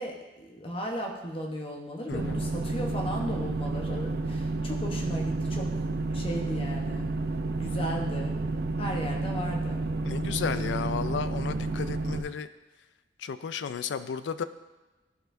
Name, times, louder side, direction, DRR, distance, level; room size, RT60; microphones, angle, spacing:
voice 1, 0.0-7.1 7.6-8.4 8.8-9.8, equal, 30° left, 0 dB, 1.0 m, -36 dB
voice 2, 2.1-2.4 10.0-12.5 13.2-14.4, left 6 dB, 85° left, 13 dB, 0.4 m, -33 dB
sound 1, 2.1-12.2, right 2 dB, 60° right, 0.4 m, -30 dB
11.5 x 4.3 x 2.6 m, 1.2 s
head